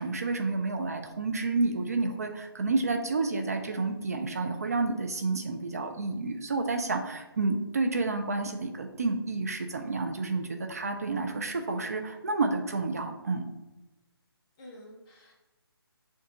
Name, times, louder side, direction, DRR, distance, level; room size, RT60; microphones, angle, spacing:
voice 1, 0.0-13.5, right 3 dB, 40° right, 5 dB, 0.4 m, -30 dB
voice 2, 11.7-12.2 14.6-15.3, equal, 10° left, -2 dB, 0.6 m, -49 dB
6.8 x 2.3 x 2.9 m, 1.1 s
figure-of-eight pair, 150°, 13 cm